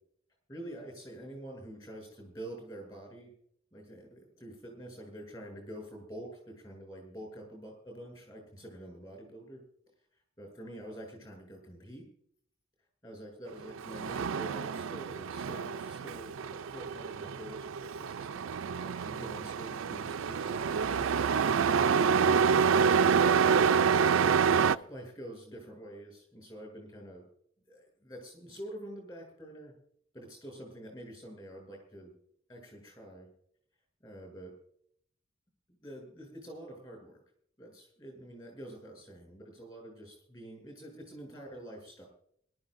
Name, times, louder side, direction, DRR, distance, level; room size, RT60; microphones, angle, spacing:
voice 1, 0.5-3.3 3.7-9.6 10.4-12.0 13.0-16.3 16.7-23.0 23.7-27.3 27.7-29.7 30.1-32.1 32.5-33.3 34.0-34.5 35.8-37.2 37.6-42.1, right 1 dB, 20° left, 1 dB, 7.6 m, -47 dB
Truck, 13.6-24.8, right 6 dB, 75° right, 0.4 m, -27 dB
25.5 x 12.5 x 2.6 m, 0.67 s
head